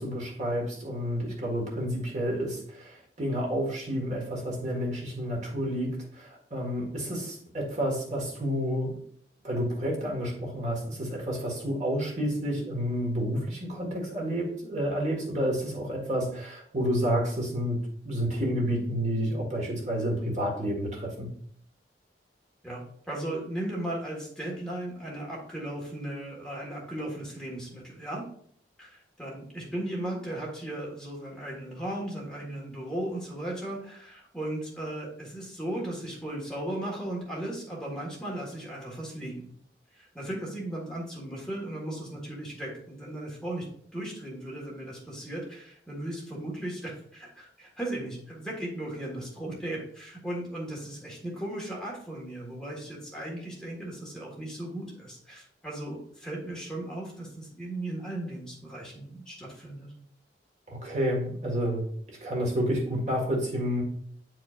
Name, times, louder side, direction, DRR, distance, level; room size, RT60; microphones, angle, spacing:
voice 1, 0.0-9.0 9.4-17.8 18.0-21.3 60.7-61.8 62.2-63.8, equal, 40° right, -1 dB, 1.6 m, -30 dB
voice 2, 22.6-28.2 28.8-39.5 39.9-43.7 43.9-59.9, right 1 dB, 5° left, -4 dB, 1.6 m, -36 dB
9.5 x 4.7 x 2.5 m, 0.63 s
head